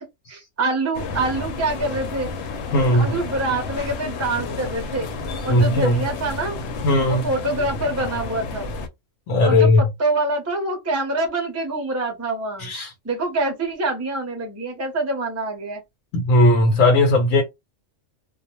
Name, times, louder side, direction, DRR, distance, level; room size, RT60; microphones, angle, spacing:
voice 1, 0.0-2.3 2.9-5.1 5.4-6.6 7.0-8.7 9.4-12.7 13.0-15.8, right 2 dB, 20° right, 0.5 m, -25 dB
sound 1, 0.9-8.9, left 3 dB, 65° left, 0.8 m, -31 dB
voice 2, 2.7-3.1 5.5-6.0 6.8-7.3 9.3-9.8 12.6-12.9 16.1-17.4, left 1 dB, 90° left, 1.1 m, -17 dB
2.3 x 2.0 x 3.0 m
omnidirectional pair, 1.3 m